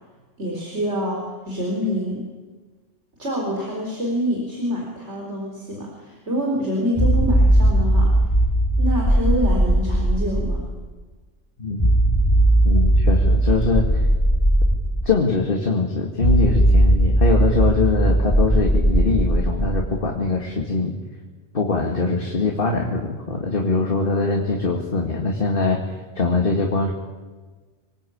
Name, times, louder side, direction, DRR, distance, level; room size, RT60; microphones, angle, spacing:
voice 1, 0.4-2.2 3.2-8.1 8.8-10.7, equal, 65° right, -1 dB, 4.5 m, -26 dB
sound 1, 7.0-10.7 11.8-15.0 16.2-19.9, right 1 dB, 15° left, 2.4 m, -18 dB
voice 2, 11.6-11.9 12.6-14.1 15.0-21.0 21.5-26.9, left 3 dB, 45° left, 1 dB, 2.3 m, -22 dB
26.0 x 20.0 x 8.7 m, 1.4 s
omnidirectional pair, 1.3 m